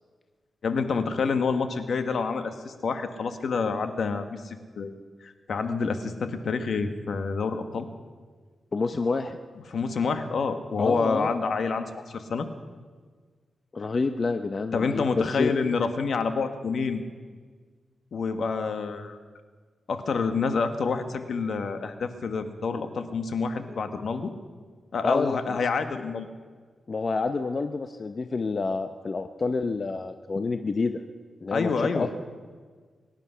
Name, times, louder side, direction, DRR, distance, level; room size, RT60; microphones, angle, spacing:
voice 1, 0.6-4.9 5.2-7.9 9.7-12.5 14.7-17.0 18.1-19.2 19.9-24.3 24.9-26.3 31.5-32.1, left 4 dB, 70° left, 8 dB, 1.3 m, -28 dB
voice 2, 8.7-9.4 10.8-11.3 13.7-15.5 23.7-23.8 25.0-25.6 26.9-31.0 31.4-32.1, left 4 dB, 45° left, 8 dB, 0.7 m, -28 dB
24.0 x 10.5 x 5.7 m, 1.5 s
cardioid pair, 75°, 0 cm